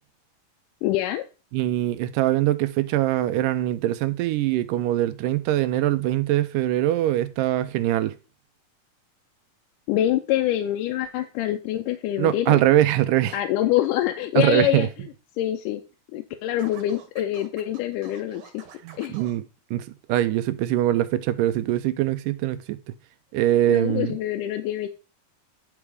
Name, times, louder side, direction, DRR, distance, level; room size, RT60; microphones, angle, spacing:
voice 1, 0.8-1.2 9.9-12.6 13.3-14.9 15.4-15.8 16.1-18.4 19.0-19.2 23.7-24.9, left 13 dB, 80° left, 2.1 m, -25 dB
voice 2, 1.5-8.1 12.2-13.3 14.4-14.9 18.8-19.4 19.7-22.8 23.3-24.1, right 14 dB, 80° right, 2.1 m, -22 dB
Scratching (performance technique), 16.6-19.4, right 7 dB, 65° right, 2.5 m, -47 dB
9.9 x 3.5 x 4.8 m
omnidirectional pair, 3.8 m